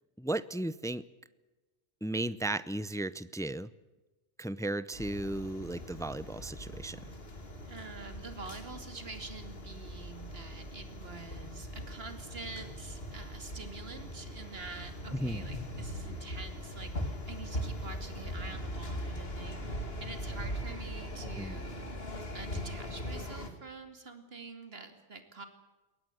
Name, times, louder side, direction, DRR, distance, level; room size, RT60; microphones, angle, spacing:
voice 1, 0.2-1.0 2.0-3.7 4.4-7.0 15.1-15.4 21.4-21.6, right 1 dB, 5° left, 17 dB, 0.4 m, -35 dB
sound 1, 4.9-23.5, equal, 55° left, 2.8 m, -40 dB
voice 2, 7.7-21.9 22.3-25.5, right 4 dB, 55° right, 7 dB, 2.8 m, -46 dB
22.0 x 19.0 x 7.9 m, 1.2 s
omnidirectional pair, 1.2 m